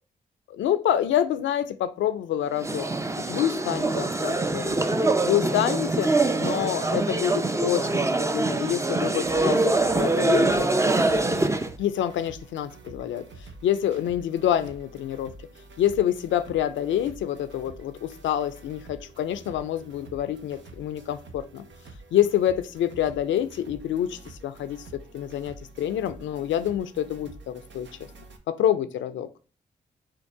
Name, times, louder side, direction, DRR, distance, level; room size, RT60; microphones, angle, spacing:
voice 1, 0.6-2.9 3.2-4.8 5.2-6.1 6.4-8.1 8.3-9.6 9.9-10.8 11.8-13.3 13.6-15.3 15.8-21.6 22.1-27.9 28.5-29.3, left 10 dB, 80° left, 0.5 m, -27 dB
sound 1, 2.6-11.7, right 2 dB, 15° right, 0.5 m, -24 dB
sound 2, 9.2-28.4, right 3 dB, 75° right, 0.8 m, -47 dB
4.5 x 2.4 x 4.8 m
supercardioid pair, 40°, 19 cm